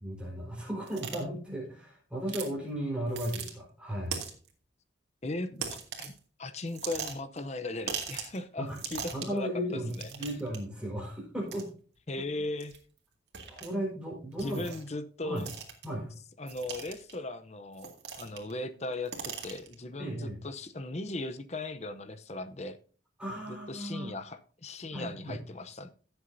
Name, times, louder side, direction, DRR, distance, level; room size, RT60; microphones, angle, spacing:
voice 1, 0.0-4.2 8.6-8.8 9.1-11.7 13.5-14.7 15.2-15.5 15.8-16.1 20.0-20.4 23.2-24.2 24.9-25.4, equal, 5° right, 4.5 m, -35 dB
sound 1, 0.9-1.2 2.3-2.5 3.1-3.5 4.1-4.5 5.6-6.2 6.7-7.4 7.9-8.4 8.7-9.4 9.9-10.6 11.5-11.6 12.6-12.8 13.3-13.7 14.4-14.9 15.4-15.9 16.5-17.1 17.8-18.5 18.8-19.7, right 7 dB, 60° right, 2.2 m, -39 dB
voice 2, 5.2-6.1 6.4-9.8 12.1-12.7 14.4-15.5 16.4-22.8 23.5-25.9, left 2 dB, 35° left, 0.7 m, -38 dB
15.5 x 8.0 x 2.7 m
head